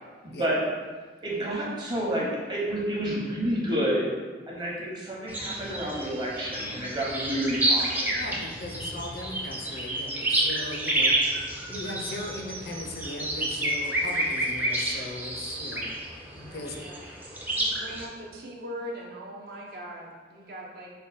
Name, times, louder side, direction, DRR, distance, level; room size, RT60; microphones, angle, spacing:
voice 1, 0.2-0.6 1.2-4.1 4.5-8.1, right 1 dB, 25° right, -5 dB, 0.8 m, -29 dB
sound 1, 5.3-18.0, right 1 dB, 10° right, 0.4 m, -29 dB
voice 2, 8.1-15.9 16.3-16.8, left 2 dB, 60° left, 2 dB, 0.5 m, -38 dB
voice 3, 16.5-17.0 17.5-20.9, equal, 55° right, -2 dB, 0.7 m, -41 dB
4.9 x 2.2 x 4.1 m, 1.4 s
head